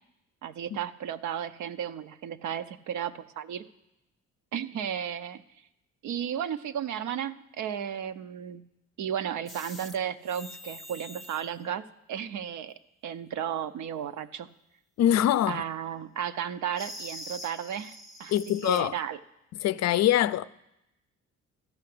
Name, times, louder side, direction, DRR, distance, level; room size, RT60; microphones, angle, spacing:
voice 1, 0.4-3.6 4.5-5.4 6.0-8.6 9.0-12.7 13.0-14.5 15.5-19.2, right 9 dB, 75° right, 0.6 m, -34 dB
sound 1, 9.5-10.0 10.2-11.5 16.8-18.8, left 1 dB, ahead, 0.7 m, -44 dB
voice 2, 15.0-15.6 18.3-18.9 19.6-20.4, left 12 dB, 60° left, 0.4 m, -23 dB
13.0 x 5.7 x 7.7 m
cardioid pair, 90°, 30 cm